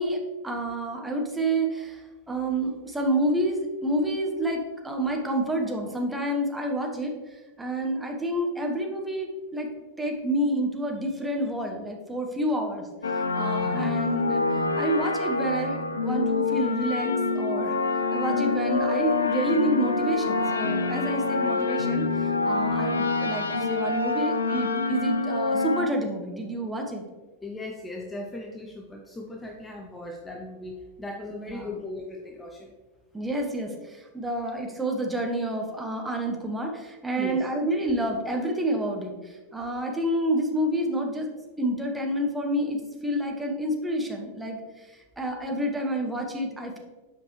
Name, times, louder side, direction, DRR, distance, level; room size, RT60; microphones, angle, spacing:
voice 1, 0.0-9.7 10.0-12.9 13.3-14.4 14.8-17.8 18.1-22.0 22.4-27.0 31.5-31.8 33.1-41.3 41.6-46.8, right 1 dB, 5° right, 1 dB, 1.1 m, -29 dB
sound 1, 13.0-25.9, left 3 dB, 75° left, 0.5 m, -26 dB
voice 2, 27.4-32.7 37.2-37.5, left 2 dB, 10° left, 1 dB, 0.6 m, -38 dB
7.9 x 5.2 x 3.2 m, 1.2 s
figure-of-eight pair, 90°, 0 cm